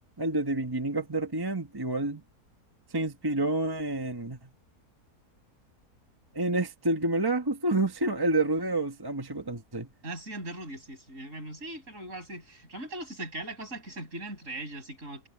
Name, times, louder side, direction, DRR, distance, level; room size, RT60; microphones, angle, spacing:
voice 1, 0.2-2.2 2.9-4.5 6.3-9.9, right 2 dB, 15° right, 1.2 m, -28 dB
voice 2, 10.0-15.3, right 1 dB, 50° right, 7.6 m, -40 dB
omnidirectional pair, 1.7 m